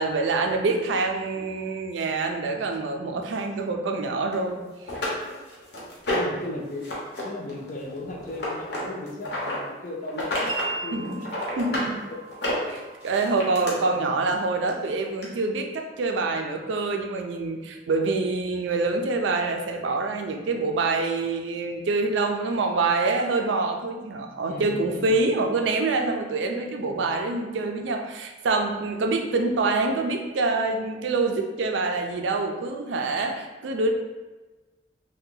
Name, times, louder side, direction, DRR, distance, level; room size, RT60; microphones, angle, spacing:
voice 1, 0.0-4.6 10.9-11.1 11.6-12.0 12.6-33.9, right 3 dB, 85° right, 3 dB, 0.4 m, -26 dB
sound 1, 4.3-4.4 4.9-6.4 6.8-7.2 7.5-9.6 10.1-10.7 11.0-11.9 12.3-13.7 14.7-14.8 15.2-15.3, left 1 dB, 65° left, 0.8 m, -30 dB
voice 2, 6.1-6.9 7.2-11.3 11.5-11.8 12.1-12.2 13.8-14.3 24.4-25.2, left 1 dB, 45° left, 0 dB, 0.5 m, -37 dB
Wind chime, 10.5-16.6, right 3 dB, 30° right, 0.5 m, -41 dB
2.7 x 2.2 x 3.7 m, 1.2 s
head